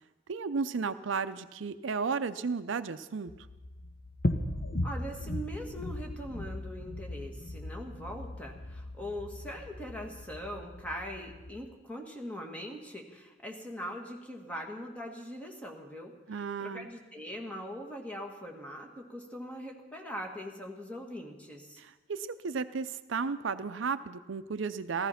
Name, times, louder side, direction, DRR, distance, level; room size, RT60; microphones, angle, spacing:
voice 1, 0.3-3.3 16.3-16.9 21.8-25.1, right 5 dB, 80° right, 12 dB, 0.6 m, -34 dB
sound 1, 3.3-11.6, left 1 dB, 50° left, 1.1 m, -37 dB
voice 2, 4.8-21.8, equal, 5° left, 1 dB, 1.8 m, -41 dB
15.0 x 14.5 x 5.8 m, 1.1 s
head